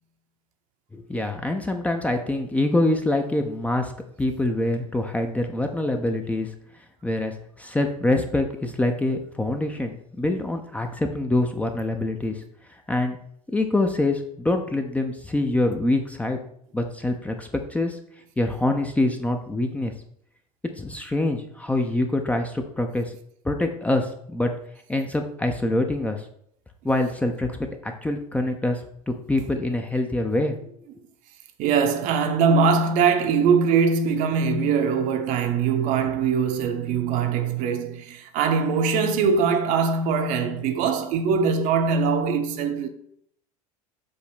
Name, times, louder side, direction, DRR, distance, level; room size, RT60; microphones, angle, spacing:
voice 1, 0.9-3.9 4.2-6.5 7.0-12.4 12.9-13.2 13.5-16.4 16.7-18.0 18.4-19.9 20.8-23.1 23.4-24.5 24.9-26.2 26.8-27.5 27.8-28.8 29.1-30.6, left 2 dB, 5° left, 0.7 m, -25 dB
voice 2, 31.6-42.9, right 5 dB, 45° right, 0.9 m, -22 dB
7.7 x 3.0 x 5.9 m
figure-of-eight pair, 75°, 19 cm